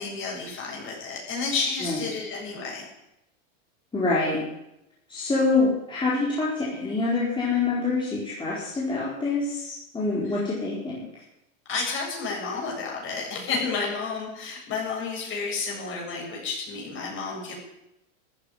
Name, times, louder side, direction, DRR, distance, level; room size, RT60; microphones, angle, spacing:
voice 1, 0.0-2.9 10.3-10.4 11.7-17.6, left 4 dB, 30° left, -2 dB, 7.8 m, -31 dB
voice 2, 3.9-4.4 5.1-11.1, left 3 dB, 10° left, -7 dB, 4.3 m, -26 dB
14.5 x 9.5 x 9.9 m, 0.87 s
supercardioid pair, 140°, 41 cm